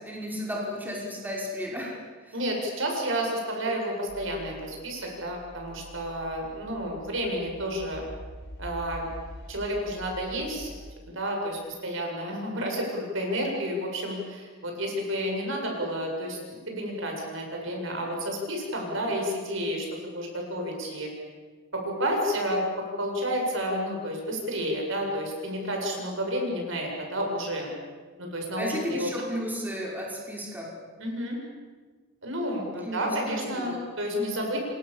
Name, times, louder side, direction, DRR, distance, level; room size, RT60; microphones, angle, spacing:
voice 1, 0.0-1.9 2.3-2.4 28.6-30.7 32.8-33.8 34.1-34.3, equal, 10° right, -3 dB, 5.5 m, -34 dB
voice 2, 2.3-8.0 8.6-9.1 9.5-10.7 11.1-21.1 21.7-27.7 28.2-29.4 31.0-31.4 32.2-34.6, equal, 65° right, 1 dB, 7.8 m, -30 dB
sound 1, 4.1-10.9, left 1 dB, 55° left, 5.0 m, -45 dB
29.0 x 25.5 x 7.3 m, 1.4 s
head